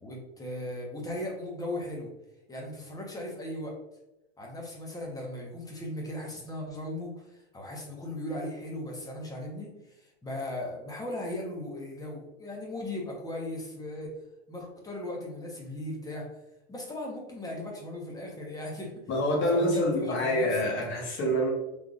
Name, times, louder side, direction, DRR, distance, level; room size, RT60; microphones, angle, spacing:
voice 1, 0.0-2.1 2.5-3.7 4.4-14.1 14.5-16.3 16.7-19.1 19.3-20.7, left 1 dB, 10° left, -1 dB, 1.0 m, -37 dB
voice 2, 19.1-21.5, equal, 35° left, -2 dB, 1.4 m, -26 dB
3.5 x 3.3 x 2.4 m, 0.93 s
hypercardioid pair, 105°, 34 cm